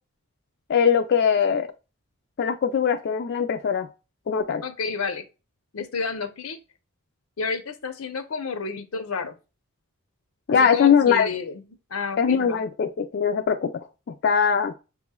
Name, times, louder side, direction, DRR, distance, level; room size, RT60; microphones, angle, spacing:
voice 1, 0.7-1.7 2.4-3.9 4.3-4.6 10.5-11.3 12.2-14.7, left 7 dB, 50° left, 0.3 m, -21 dB
voice 2, 4.6-5.2 5.7-6.6 7.4-9.3 10.5-11.6 11.9-12.6, left 5 dB, 85° left, 0.6 m, -30 dB
6.0 x 3.0 x 2.2 m
head